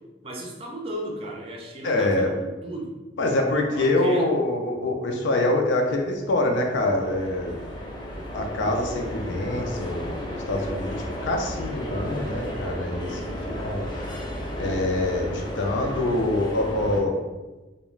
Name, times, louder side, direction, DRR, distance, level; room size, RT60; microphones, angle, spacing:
voice 1, 0.2-3.0 3.7-4.3, right 1 dB, 30° right, -1 dB, 0.4 m, -35 dB
voice 2, 1.8-2.3 3.2-7.6 8.3-10.9 11.2-13.2 13.6-13.9 14.6-17.2, left 2 dB, 85° left, 2 dB, 0.4 m, -25 dB
sound 1, 6.1-17.0, equal, 25° left, 0.4 m, -34 dB
2.3 x 2.2 x 3.1 m, 1.2 s
head